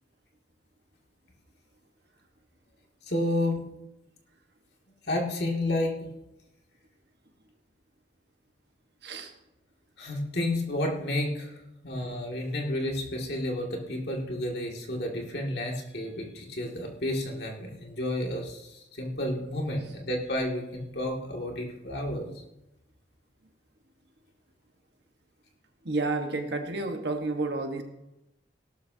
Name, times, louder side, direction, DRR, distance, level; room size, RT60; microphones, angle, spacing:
voice 1, 3.1-3.6 5.1-6.0 10.0-11.6 11.8-22.2, left 1 dB, 60° left, 0 dB, 2.4 m, -31 dB
voice 2, 25.8-27.8, right 3 dB, 60° right, 4 dB, 1.4 m, -30 dB
17.5 x 12.5 x 2.8 m, 0.91 s
head